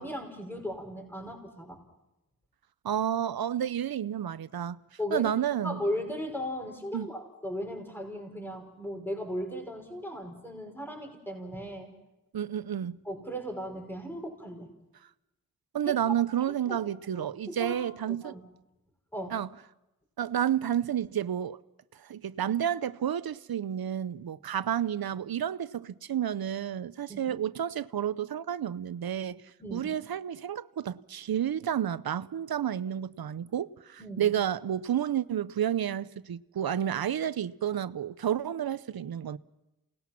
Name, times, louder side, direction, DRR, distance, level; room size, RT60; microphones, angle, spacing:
voice 1, 0.0-1.8 5.0-5.3 5.6-12.0 13.0-14.7 15.9-16.0 16.7-16.8 17.1-17.8 18.2-18.4 19.1-19.4 27.1-27.3 29.6-29.9 34.0-34.3, equal, 5° left, 5.4 m, -37 dB
voice 2, 2.8-4.8 5.1-5.8 6.9-7.1 12.3-13.0 15.7-18.3 19.3-19.5 20.2-21.6 22.0-29.4 29.7-39.4, right 10 dB, 80° right, 0.7 m, -30 dB
28.5 x 19.5 x 5.9 m
cardioid pair, 40°, 36 cm